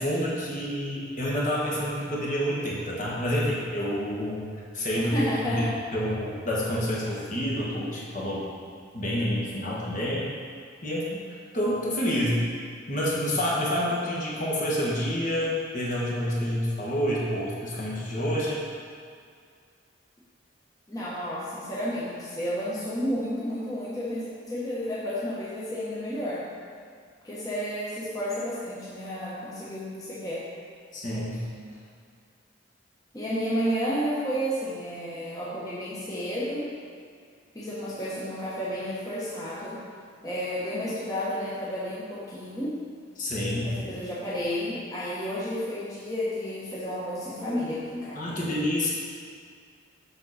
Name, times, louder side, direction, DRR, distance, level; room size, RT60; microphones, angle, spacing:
voice 1, 0.0-5.6 5.9-8.4 8.9-10.3 10.8-11.2 11.5-12.4 12.9-18.6 30.9-31.5 43.2-43.7 48.1-48.9, equal, 40° left, -6 dB, 1.6 m, -28 dB
voice 2, 5.0-5.7 20.9-26.4 27.2-30.5 33.1-36.7 37.5-39.8 40.2-42.8 43.6-48.6, equal, 20° left, -9 dB, 1.2 m, -31 dB
7.6 x 6.1 x 4.2 m, 2.2 s
head